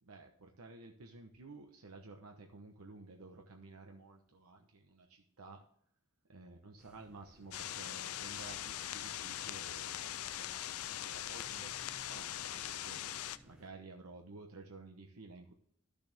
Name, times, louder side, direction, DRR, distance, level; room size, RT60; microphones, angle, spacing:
voice 1, 0.0-5.6 6.3-13.0 13.4-15.5, right 3 dB, 90° right, 2 dB, 1.1 m, -53 dB
sound 1, 6.8-13.7, right 1 dB, 5° right, 1.2 m, -62 dB
sound 2, 7.5-13.4, left 12 dB, 75° left, 0.5 m, -41 dB
12.5 x 6.7 x 3.5 m, 0.63 s
head